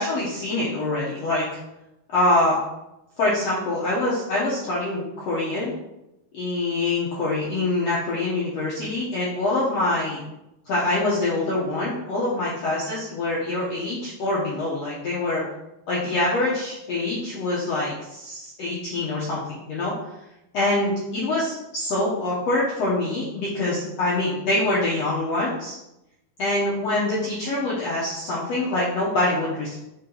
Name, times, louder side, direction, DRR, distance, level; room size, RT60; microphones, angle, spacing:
voice 1, 0.0-1.4 2.1-2.6 3.2-5.7 6.3-10.2 10.6-15.4 15.9-19.9 20.5-25.8 26.4-29.8, left 2 dB, 80° left, -7 dB, 1.4 m, -25 dB
5.9 x 4.5 x 3.9 m, 0.90 s
omnidirectional pair, 4.5 m